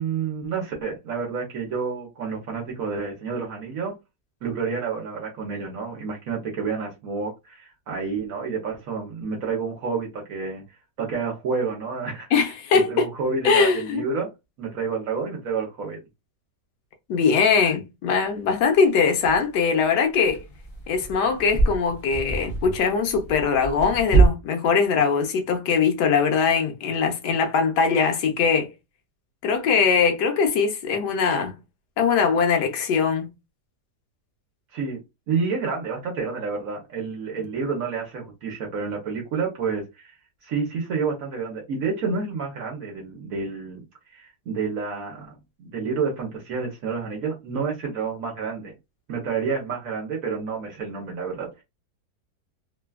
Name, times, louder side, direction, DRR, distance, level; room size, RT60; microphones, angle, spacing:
voice 1, 0.0-3.9 4.4-10.6 11.0-12.3 12.7-14.3 14.6-16.0 34.7-35.0 35.3-40.1 40.4-43.8 44.1-48.7 49.1-51.6, right 5 dB, 60° right, 1.1 m, -29 dB
voice 2, 12.3-13.1 13.4-14.0 17.1-20.4 20.9-28.7 29.4-31.6 32.0-33.3, left 5 dB, 80° left, 1.3 m, -21 dB
sound 1, 18.3-18.4 19.2-19.4 20.2-24.3, right 3 dB, 55° left, 0.5 m, -24 dB
3.2 x 2.2 x 2.2 m
omnidirectional pair, 1.8 m